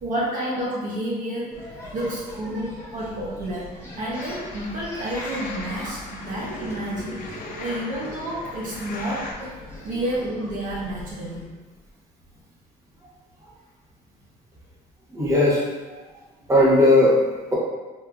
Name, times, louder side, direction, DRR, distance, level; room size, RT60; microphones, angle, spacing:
voice 1, 0.0-1.6 1.9-9.5 9.8-11.4, right 1 dB, 50° right, -6 dB, 0.8 m, -30 dB
sound 1, 1.5-11.5, left 1 dB, 15° left, 0.9 m, -40 dB
sound 2, 4.1-9.3, left 3 dB, 55° left, 0.5 m, -39 dB
voice 2, 15.1-16.0 16.5-17.5, left 1 dB, 20° right, -6 dB, 1.0 m, -19 dB
3.6 x 2.6 x 2.3 m, 1.2 s
cardioid pair, 110°, 17 cm